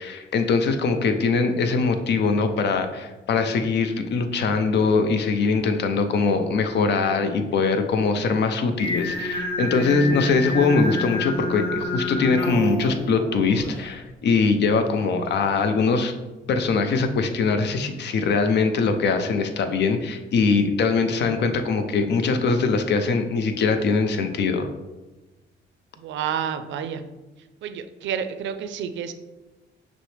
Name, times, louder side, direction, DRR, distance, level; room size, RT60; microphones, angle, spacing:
voice 1, 0.0-16.1 16.5-24.7, left 4 dB, 60° left, 8 dB, 0.5 m, -22 dB
Singing, 8.8-13.9, left 1 dB, 25° left, 1.2 m, -28 dB
voice 2, 26.0-27.0 27.6-29.1, right 8 dB, 70° right, 9 dB, 0.4 m, -29 dB
6.0 x 2.1 x 3.2 m, 1.1 s
cardioid pair, 90°, 20 cm